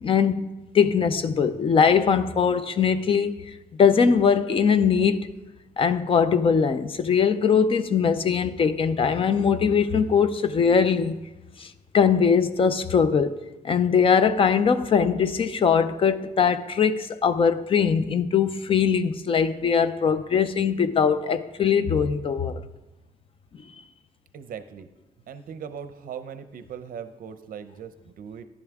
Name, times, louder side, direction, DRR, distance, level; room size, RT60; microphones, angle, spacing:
voice 1, 0.0-0.5 0.7-3.4 3.8-5.3 5.8-11.2 11.6-11.7 11.9-13.4 13.6-22.6, left 6 dB, 35° left, 0.5 m, -21 dB
voice 2, 24.3-24.9 25.3-28.4, right 7 dB, 70° right, 0.6 m, -39 dB
14.0 x 11.0 x 3.6 m
wide cardioid pair, 170°, 15 cm